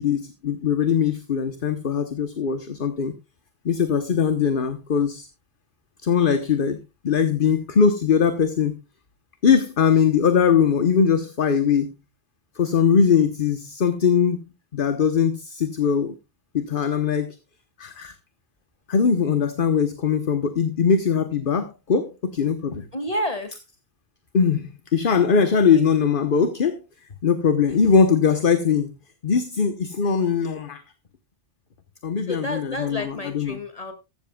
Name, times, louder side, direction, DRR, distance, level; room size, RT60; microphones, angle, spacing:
voice 1, 0.0-3.1 3.6-5.3 6.0-6.8 7.0-8.7 9.4-11.9 12.5-14.4 14.7-16.2 16.5-17.4 17.8-18.1 18.9-22.9 24.3-26.8 27.2-28.9 29.2-30.8 32.0-33.6, left 6 dB, 55° left, 9 dB, 1.3 m, -21 dB
voice 2, 22.9-23.5 25.7-25.8 32.3-33.9, left 1 dB, 35° left, 8 dB, 2.5 m, -30 dB
15.0 x 13.0 x 2.3 m, 0.26 s
omnidirectional pair, 1.1 m